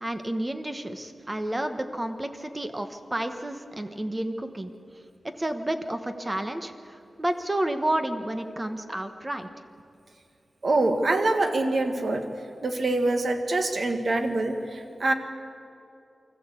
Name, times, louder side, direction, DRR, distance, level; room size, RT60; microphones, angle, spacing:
voice 1, 0.0-4.7 5.2-9.5, right 1 dB, 20° right, 7 dB, 1.2 m, -30 dB
voice 2, 10.6-12.2 12.6-15.1, right 2 dB, 50° right, 5 dB, 1.7 m, -25 dB
25.0 x 14.5 x 8.3 m, 2.6 s
wide cardioid pair, 150°, 0 cm